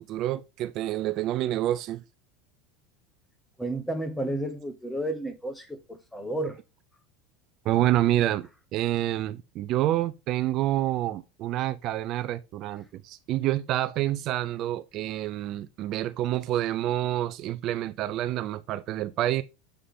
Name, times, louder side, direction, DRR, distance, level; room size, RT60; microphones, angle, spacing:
voice 1, 0.0-2.0 7.7-19.4, right 14 dB, 50° right, 0.4 m, -28 dB
voice 2, 3.6-6.6, right 1 dB, 5° left, 1.2 m, -32 dB
8.1 x 3.3 x 3.8 m
hypercardioid pair, 95°, 0 cm